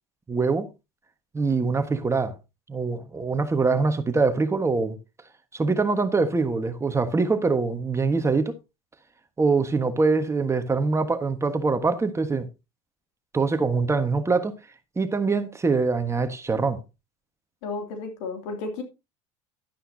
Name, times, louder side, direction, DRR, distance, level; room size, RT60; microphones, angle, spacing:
voice 1, 0.3-0.7 1.3-2.4 2.7-5.0 5.5-8.5 9.4-12.5 13.3-14.5 15.0-16.8, right 4 dB, 20° right, 1.4 m, -23 dB
voice 2, 17.6-18.8, left 3 dB, 75° left, 2.8 m, -33 dB
11.5 x 10.0 x 2.8 m
supercardioid pair, 90°, 15 cm